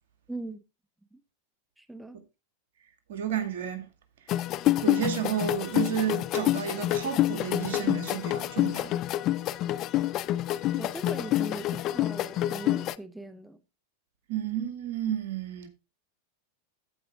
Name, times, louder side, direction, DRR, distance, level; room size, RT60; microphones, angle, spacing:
voice 1, 0.3-0.6 1.1-1.2 1.8-2.2 10.8-13.6, right 2 dB, 5° right, 0.7 m, -40 dB
voice 2, 3.1-3.9 4.8-8.9 14.3-15.7, right 9 dB, 70° right, 2.0 m, -31 dB
sound 1, 4.3-12.9, left 14 dB, 40° left, 0.4 m, -27 dB
15.0 x 5.0 x 3.5 m
hypercardioid pair, 100°, 0 cm